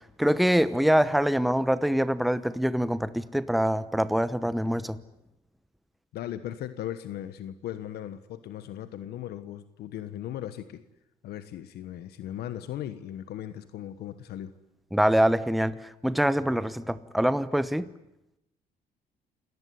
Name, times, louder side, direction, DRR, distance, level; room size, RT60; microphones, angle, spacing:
voice 1, 0.2-5.0 14.9-17.9, equal, ahead, 14 dB, 0.9 m, -24 dB
voice 2, 6.1-10.8 11.2-14.5, left 11 dB, 70° left, 12 dB, 1.3 m, -37 dB
28.5 x 18.0 x 9.6 m, 0.86 s
cardioid pair, 110°, 17 cm